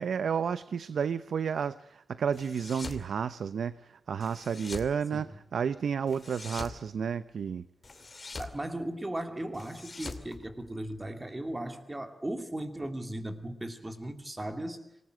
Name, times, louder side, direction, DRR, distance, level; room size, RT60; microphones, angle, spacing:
voice 1, 0.0-7.7, right 7 dB, 80° right, 0.8 m, -31 dB
sound 1, 2.3-3.1 4.2-4.9 6.1-6.8 7.8-8.6 9.5-11.1, left 3 dB, 30° left, 2.6 m, -43 dB
voice 2, 8.4-14.9, right 1 dB, 15° right, 2.6 m, -37 dB
26.5 x 20.0 x 7.8 m
wide cardioid pair, 180°, 0 cm